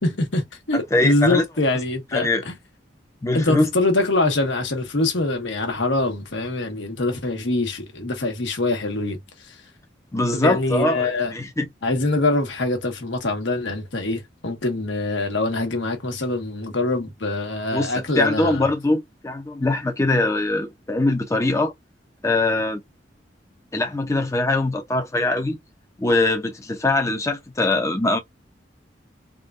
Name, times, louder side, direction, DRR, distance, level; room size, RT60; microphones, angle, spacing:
voice 1, 0.0-2.6 3.3-9.2 10.3-11.3 11.8-18.6, left 2 dB, 80° left, 1.2 m, -24 dB
voice 2, 0.7-1.4 2.1-2.4 3.2-3.7 10.1-11.7 17.7-21.7 22.2-22.8 23.7-25.6 26.0-28.2, left 2 dB, 15° left, 0.6 m, -22 dB
3.6 x 2.3 x 2.4 m
head